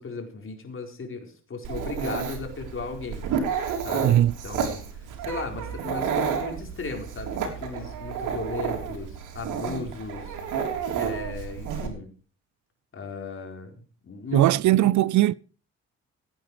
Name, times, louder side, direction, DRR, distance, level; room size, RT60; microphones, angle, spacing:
voice 1, 0.0-3.2 3.8-4.9 5.3-10.4 11.0-12.1 12.9-13.7 14.0-14.5 14.8-14.9, left 4 dB, 45° left, 4.4 m, -36 dB
Dog, 1.6-11.9, right 7 dB, 90° right, 3.4 m, -31 dB
voice 2, 4.0-4.3 14.3-15.3, right 14 dB, 70° right, 0.5 m, -19 dB
16.5 x 9.1 x 5.0 m
cardioid pair, 90°, 30 cm